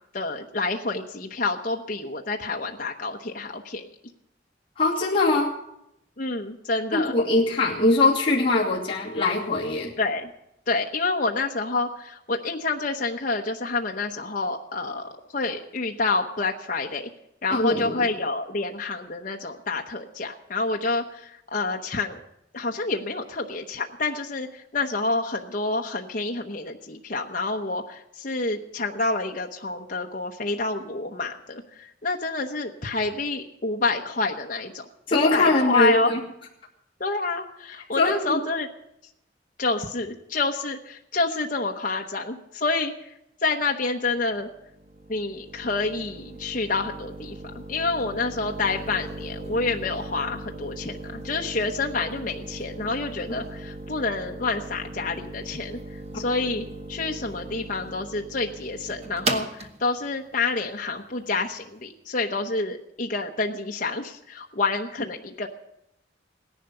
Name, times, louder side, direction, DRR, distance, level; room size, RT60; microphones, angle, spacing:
voice 1, 0.1-3.9 6.2-7.1 10.0-10.3 10.7-17.1 17.4-22.2 22.5-34.8 35.1-36.1 37.0-38.7 39.6-42.9 43.4-44.5 45.1-55.8 56.2-65.5, left 3 dB, 45° left, 1 dB, 1.0 m, -28 dB
voice 2, 4.8-5.6 6.9-9.9 17.5-18.0 35.1-36.2 38.0-38.4 53.3-53.4 56.4-56.5, left 2 dB, 30° left, -6 dB, 2.5 m, -22 dB
sound 1, 44.2-61.8, right 2 dB, 35° right, 1.2 m, -38 dB
17.0 x 11.0 x 6.8 m, 0.80 s
head